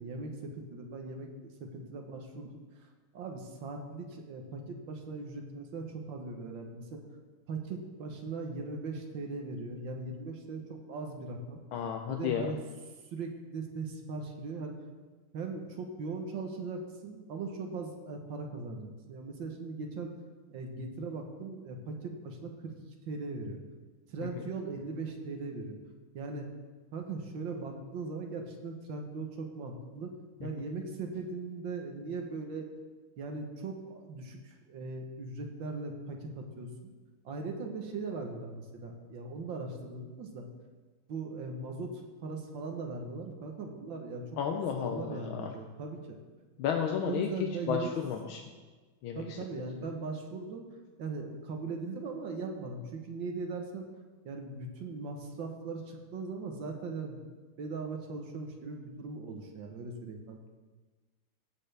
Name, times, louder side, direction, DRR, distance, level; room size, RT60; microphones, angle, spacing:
voice 1, 0.0-2.5 3.1-7.0 7.5-11.6 12.1-12.6 13.1-14.7 15.3-20.2 20.5-22.7 23.1-23.6 24.1-25.8 26.1-26.5 26.9-30.1 30.4-32.7 33.2-36.9 37.2-40.5 41.1-44.2 44.5-46.2 46.8-47.9 49.2-50.6 51.0-53.9 54.3-57.2 57.6-60.4, right 3 dB, 70° right, 3 dB, 1.8 m, -39 dB
voice 2, 11.7-12.5 24.4-24.5 44.4-45.5 46.6-47.3 47.7-48.4 49.0-49.4, left 8 dB, 80° left, 3 dB, 1.5 m, -32 dB
16.5 x 6.8 x 3.4 m, 1.3 s
omnidirectional pair, 2.2 m